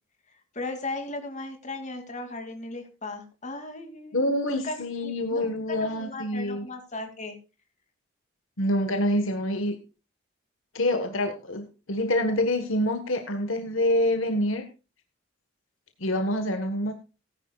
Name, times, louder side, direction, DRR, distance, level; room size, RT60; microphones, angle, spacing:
voice 1, 0.3-7.4, left 2 dB, 35° left, 5 dB, 2.7 m, -37 dB
voice 2, 4.1-6.6 8.6-9.8 10.7-14.6 16.0-16.9, left 1 dB, 70° left, 7 dB, 1.5 m, -26 dB
18.5 x 10.0 x 2.4 m, 0.31 s
head